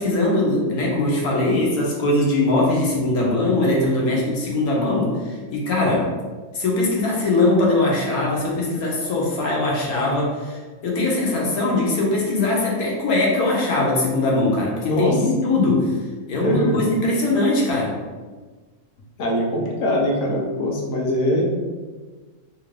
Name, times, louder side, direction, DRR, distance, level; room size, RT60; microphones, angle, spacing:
voice 1, 0.0-6.1 6.5-15.9 16.3-17.9, left 2 dB, 90° left, -3 dB, 1.3 m, -21 dB
voice 2, 14.8-15.2 16.4-16.8 19.2-21.4, left 1 dB, 60° left, -2 dB, 0.9 m, -22 dB
3.3 x 2.5 x 3.2 m, 1.3 s
omnidirectional pair, 1.5 m